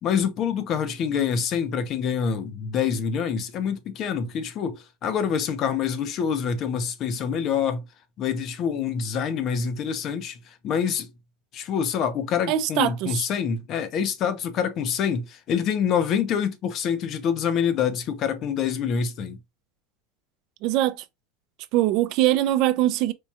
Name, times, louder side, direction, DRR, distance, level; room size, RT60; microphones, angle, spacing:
voice 1, 0.0-7.8 8.2-11.1 11.5-19.4, left 7 dB, 35° left, 0.6 m, -26 dB
voice 2, 12.5-13.2 20.6-21.0 21.7-23.1, right 14 dB, 50° right, 0.5 m, -22 dB
4.6 x 2.3 x 2.7 m
supercardioid pair, 155°, 0 cm